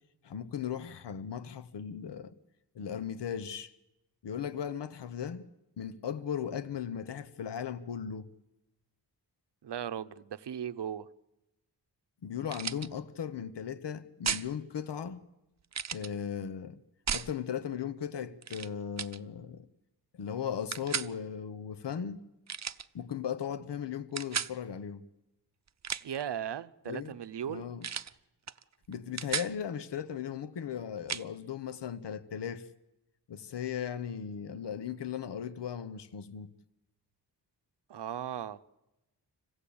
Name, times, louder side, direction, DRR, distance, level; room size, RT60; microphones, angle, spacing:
voice 1, 0.2-2.3 2.7-3.7 4.2-5.5 5.8-8.3 12.2-15.2 15.9-16.8 17.1-19.7 20.2-22.2 22.9-25.0 26.9-27.1 27.5-27.9 28.9-32.7 33.3-36.5, left 8 dB, 80° left, 0.9 m, -37 dB
voice 2, 9.6-11.1 26.0-27.7 37.9-38.6, right 9 dB, 75° right, 0.8 m, -37 dB
sound 1, 12.5-12.9 14.2-14.5 15.7-16.1 17.1-17.3 18.4-18.7 19.0-19.2 20.7-21.1 22.5-22.9 24.2-24.5 25.7-26.2 27.8-28.1 28.5-28.6 28.9-29.5 31.1-31.3, right 7 dB, 40° right, 0.7 m, -34 dB
26.0 x 17.0 x 8.6 m
wide cardioid pair, 70°, 41 cm